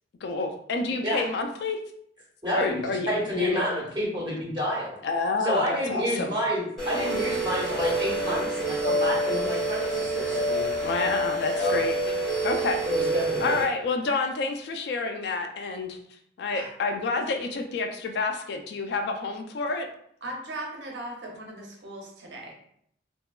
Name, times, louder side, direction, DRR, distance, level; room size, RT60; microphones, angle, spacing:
voice 1, 0.2-1.8 2.5-3.8 5.0-6.4 10.8-11.9 12.4-12.8 13.4-16.0 16.4-19.9, left 3 dB, 60° left, 4 dB, 0.3 m, -29 dB
voice 2, 2.4-4.9 5.4-10.7 11.5-11.7 12.8-13.5 16.5-16.7, equal, 25° right, -6 dB, 1.0 m, -29 dB
sound 1, 6.8-13.6, right 1 dB, 5° left, 0.8 m, -27 dB
voice 3, 20.2-22.5, right 1 dB, 70° right, 0 dB, 0.6 m, -38 dB
2.8 x 2.2 x 2.2 m, 0.68 s
head